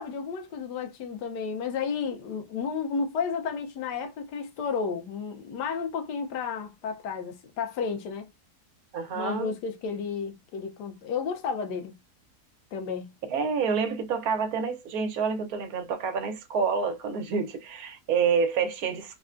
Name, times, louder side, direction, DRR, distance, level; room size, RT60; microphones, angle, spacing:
voice 1, 0.0-8.3 9.1-12.0 12.7-13.1, left 5 dB, 85° left, 1.3 m, -32 dB
voice 2, 8.9-9.5 13.3-19.2, right 5 dB, 70° right, 1.1 m, -28 dB
3.4 x 2.2 x 2.4 m
omnidirectional pair, 1.7 m